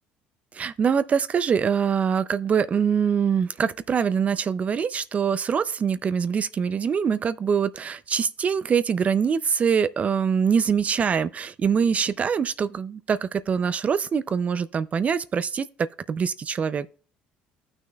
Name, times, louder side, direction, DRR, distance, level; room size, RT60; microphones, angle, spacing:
voice 1, 0.5-15.7 16.1-16.9, right 7 dB, 35° right, 0.4 m, -24 dB
15.0 x 6.1 x 2.2 m
supercardioid pair, 90°, 4 cm